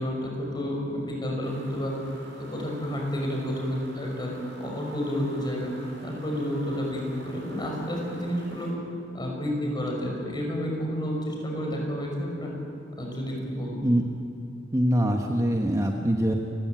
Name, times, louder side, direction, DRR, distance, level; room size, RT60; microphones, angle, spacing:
voice 1, 0.0-1.9 2.4-5.7 6.0-8.7 9.1-12.5 13.0-13.9, equal, 25° left, 0 dB, 5.7 m, -30 dB
sound 1, 1.4-8.7, right 1 dB, 80° right, 5.1 m, -48 dB
voice 2, 14.7-16.3, equal, 15° right, 2 dB, 1.2 m, -23 dB
28.5 x 15.5 x 9.1 m, 2.6 s
head